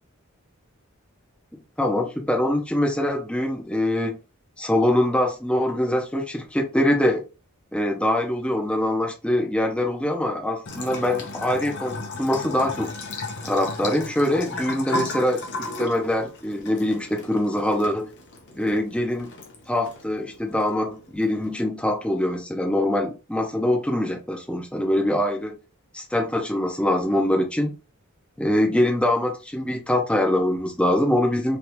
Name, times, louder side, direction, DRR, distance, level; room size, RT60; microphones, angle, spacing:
voice 1, 1.8-4.2 4.6-7.2 7.7-12.9 13.4-18.1 18.5-19.3 19.7-25.6 25.9-27.8 28.4-31.6, left 1 dB, 5° left, 0.6 m, -23 dB
Bathtub (filling or washing) / Trickle dribble, 10.7-21.6, left 2 dB, 55° left, 0.8 m, -35 dB
3.2 x 2.4 x 2.9 m
head